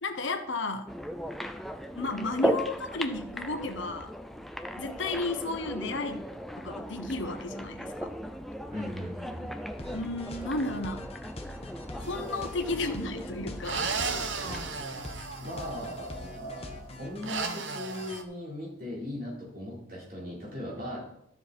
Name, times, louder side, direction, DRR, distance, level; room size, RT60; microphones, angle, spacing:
voice 1, 0.0-0.9 2.0-4.1 4.8-6.2 6.6-8.1 9.9-11.0 12.1-13.9, left 2 dB, 65° left, 7 dB, 1.0 m, -33 dB
sound 1, 0.9-14.8, equal, ahead, 0.3 m, -37 dB
voice 2, 8.7-9.6 15.4-21.0, left 1 dB, 45° right, -5 dB, 3.9 m, -38 dB
sound 2, 9.8-18.2, left 1 dB, 30° left, 0.9 m, -44 dB
sound 3, 12.0-12.6 13.6-16.1 17.2-18.2, right 5 dB, 65° right, 0.8 m, -35 dB
12.0 x 6.8 x 4.3 m, 0.76 s
head